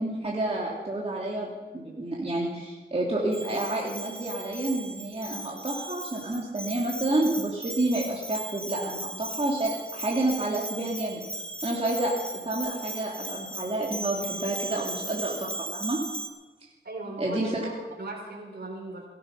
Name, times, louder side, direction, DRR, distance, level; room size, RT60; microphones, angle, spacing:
voice 1, 0.0-1.5 1.7-12.1 12.4-16.0 17.2-17.6, right 2 dB, 30° right, -4 dB, 2.8 m, -29 dB
Bell, 3.3-16.3, right 2 dB, 5° left, 1.7 m, -38 dB
voice 2, 16.8-19.1, right 2 dB, 60° right, 0 dB, 4.1 m, -38 dB
17.5 x 12.0 x 5.6 m, 1.2 s
wide cardioid pair, 65°, 19 cm